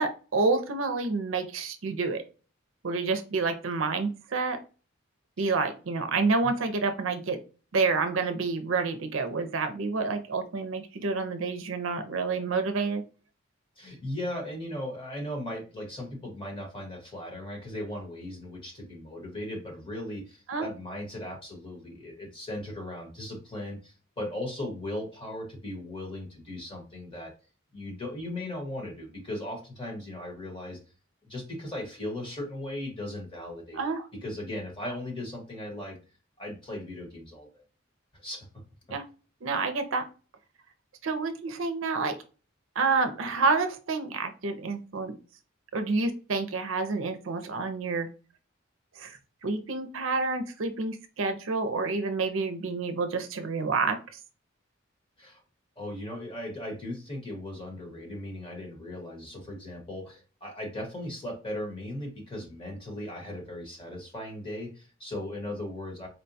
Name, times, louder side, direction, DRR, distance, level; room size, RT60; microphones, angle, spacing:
voice 1, 0.0-2.2 2.8-4.6 5.4-7.4 7.7-13.0 20.5-20.7 33.7-34.1 38.9-39.0 39.4-40.1 41.0-42.2 42.8-45.1 45.7-48.1 49.0-54.2, right 4 dB, 65° right, 7 dB, 0.5 m, -28 dB
voice 2, 13.8-27.3 27.7-30.8 31.2-33.9 34.2-36.0 36.4-37.6 38.1-38.5 55.2-55.4 55.8-66.1, left 1 dB, 25° left, 1 dB, 1.2 m, -37 dB
4.3 x 2.2 x 2.6 m, 0.35 s
head